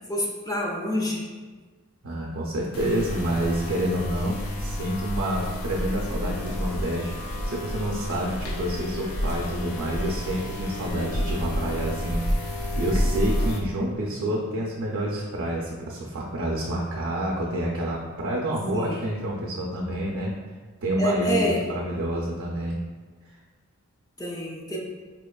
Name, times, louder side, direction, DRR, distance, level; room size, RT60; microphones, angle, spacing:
voice 1, 0.1-1.2 18.7-19.0 21.0-21.6 24.2-24.8, equal, 15° left, -2 dB, 0.4 m, -27 dB
voice 2, 2.0-20.4 20.8-22.8, right 1 dB, 65° right, -3 dB, 0.5 m, -28 dB
sound 1, 2.7-13.6, equal, 85° left, 0.5 m, -30 dB
4.2 x 2.8 x 2.3 m, 1.4 s
head